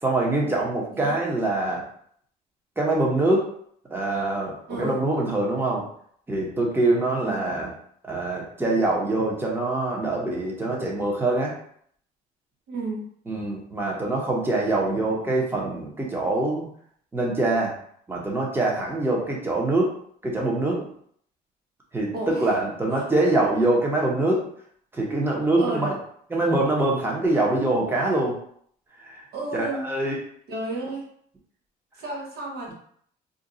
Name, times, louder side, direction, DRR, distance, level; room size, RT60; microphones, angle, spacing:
voice 1, 0.0-1.9 2.8-3.5 3.9-5.9 6.3-7.7 8.0-11.6 13.3-16.7 17.1-17.8 18.1-19.9 20.2-20.9 21.9-24.5 24.9-25.9 26.3-28.4 29.0-29.2 29.5-30.2, right 2 dB, 15° right, -2 dB, 0.8 m, -24 dB
voice 2, 7.2-7.6 12.7-13.1 22.1-22.6 22.9-23.1 25.6-25.9 29.3-29.8 30.5-31.1 32.0-32.7, right 2 dB, 65° right, 0 dB, 0.8 m, -32 dB
2.6 x 2.3 x 3.8 m, 0.63 s
cardioid pair, 110°, 17 cm